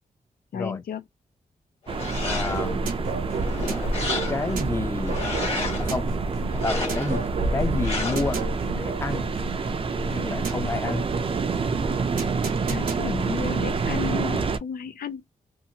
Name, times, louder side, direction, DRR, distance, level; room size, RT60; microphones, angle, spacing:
voice 1, 0.5-1.0 12.7-15.2, left 7 dB, 90° left, 0.5 m, -33 dB
sound 1, 1.9-2.8 3.3-4.6 5.0-5.9 6.5-7.3 7.8-8.4, left 3 dB, 40° left, 1.3 m, -32 dB
sound 2, 1.9-14.6, right 3 dB, 35° right, 0.4 m, -27 dB
voice 2, 2.2-2.9 4.3-5.2 5.8-6.1 6.6-7.2 7.5-8.5 8.8-9.3 10.1-11.0, left 3 dB, 20° left, 0.5 m, -29 dB
sound 3, 2.5-14.4, right 6 dB, 70° right, 0.7 m, -35 dB
2.6 x 2.5 x 2.8 m
wide cardioid pair, 140°, 15 cm